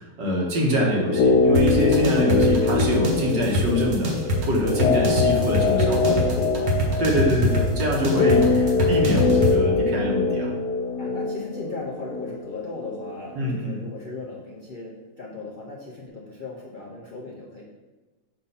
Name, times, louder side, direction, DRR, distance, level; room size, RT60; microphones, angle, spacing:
voice 1, 0.0-4.1 4.5-6.0 7.0-10.5 13.4-13.8, equal, 90° right, -2 dB, 1.9 m, -25 dB
sound 1, 1.0-13.2 13.4-13.5, left 3 dB, 85° left, 1.2 m, -23 dB
sound 2, 1.5-9.5, equal, 45° right, 1.1 m, -24 dB
voice 2, 2.0-2.6 5.7-6.8 11.0-17.6, left 3 dB, 60° left, -3 dB, 0.5 m, -37 dB
6.6 x 2.7 x 5.5 m, 1.2 s
omnidirectional pair, 1.9 m